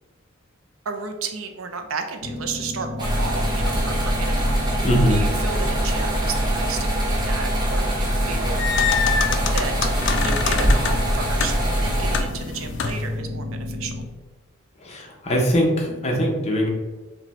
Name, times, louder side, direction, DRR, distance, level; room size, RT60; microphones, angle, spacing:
voice 1, 0.8-8.6 9.4-13.9, right 4 dB, 75° right, 5 dB, 0.6 m, -33 dB
sound 1, 2.2-14.0, left 1 dB, 60° right, 1.1 m, -33 dB
sound 2, 3.0-12.2, equal, 20° right, 0.7 m, -23 dB
voice 2, 4.8-5.2 14.8-16.7, equal, 30° left, -1 dB, 0.9 m, -21 dB
sound 3, 8.2-13.1, left 6 dB, 55° left, 0.4 m, -26 dB
4.9 x 2.3 x 4.2 m, 1.2 s
head